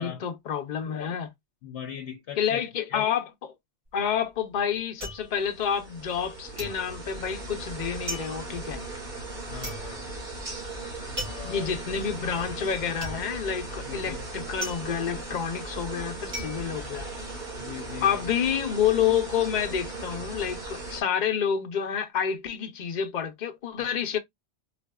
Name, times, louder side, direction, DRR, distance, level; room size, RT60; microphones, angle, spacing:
voice 1, 0.0-1.3 2.4-3.5 3.9-8.8 11.4-17.1 18.0-24.2, left 8 dB, 50° left, 0.7 m, -29 dB
voice 2, 1.6-2.6 2.9-3.1 9.5-10.1 11.2-11.7 13.9-14.2 17.6-18.2, left 9 dB, 75° left, 0.9 m, -40 dB
sound 1, 3.9-6.3 6.6-17.7 18.0-18.6, equal, 60° right, 2.2 m, -40 dB
sound 2, 5.2-21.0, right 2 dB, 45° right, 1.6 m, -38 dB
4.0 x 2.5 x 2.2 m
omnidirectional pair, 1.2 m